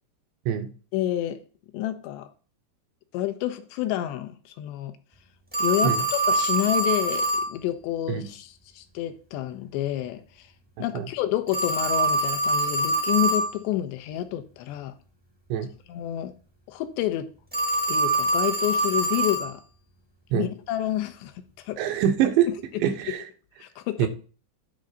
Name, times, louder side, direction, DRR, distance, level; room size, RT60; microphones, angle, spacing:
voice 1, 0.9-1.4 1.7-2.3 3.1-4.9 5.6-10.2 10.8-14.9 15.9-16.3 16.7-17.3 17.9-19.6 20.3-21.8 23.6-24.1, left 13 dB, 80° left, 3.0 m, -29 dB
Telephone, 5.5-7.5 11.5-13.5 17.5-19.5, right 2 dB, 10° right, 0.5 m, -24 dB
voice 2, 21.8-22.5 22.8-23.2 24.0-24.1, right 9 dB, 85° right, 3.3 m, -24 dB
9.6 x 3.9 x 6.4 m
omnidirectional pair, 5.1 m